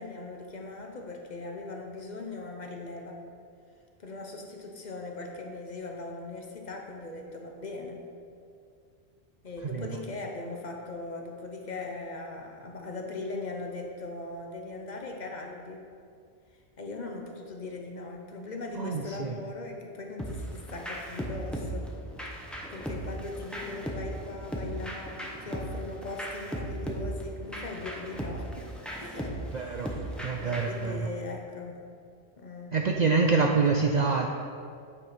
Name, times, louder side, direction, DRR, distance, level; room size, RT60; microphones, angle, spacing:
voice 1, 0.0-3.2 4.0-8.1 9.4-15.8 16.8-21.9 22.7-28.7 29.0-30.1 30.4-31.9 32.4-33.2 33.6-34.0, left 3 dB, 45° left, 2 dB, 0.8 m, -40 dB
voice 2, 18.8-19.3 29.5-29.9 30.2-31.1 32.7-34.3, right 4 dB, 60° right, 2 dB, 0.5 m, -26 dB
sound 1, 20.2-30.9, right 1 dB, ahead, 0.7 m, -37 dB
8.6 x 4.4 x 5.0 m, 2.3 s
omnidirectional pair, 1.1 m